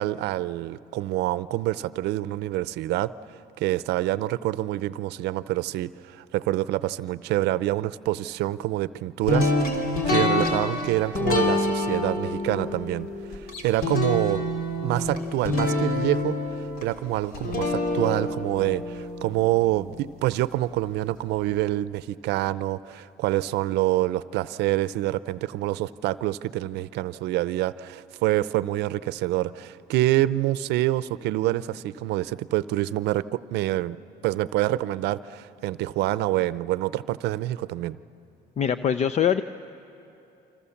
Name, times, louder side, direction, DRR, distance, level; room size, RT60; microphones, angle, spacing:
voice 1, 0.0-3.1 3.6-14.4 14.8-38.0, right 15 dB, 85° right, 16 dB, 0.6 m, -26 dB
sound 1, 9.3-20.3, left 2 dB, 60° left, 3.4 m, -27 dB
voice 2, 38.6-39.4, left 8 dB, 40° left, 12 dB, 0.6 m, -23 dB
28.0 x 26.0 x 7.1 m, 2.8 s
cardioid pair, 110°, 17 cm